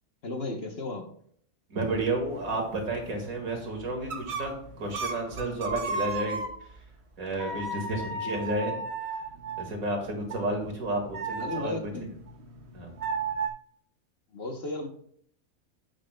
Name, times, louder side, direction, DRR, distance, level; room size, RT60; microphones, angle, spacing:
voice 1, 0.2-1.1 11.4-12.2 14.3-14.9, left 2 dB, 50° left, 4 dB, 1.1 m, -35 dB
voice 2, 1.7-4.5 4.8-6.4 7.2-8.8 9.6-11.9 12.7-12.9, right 2 dB, 75° right, 2 dB, 2.3 m, -31 dB
sound 1, 1.9-6.9 7.4-13.5, right 4 dB, 55° right, 1.1 m, -36 dB
8.9 x 8.9 x 2.2 m, 0.63 s
omnidirectional pair, 1.5 m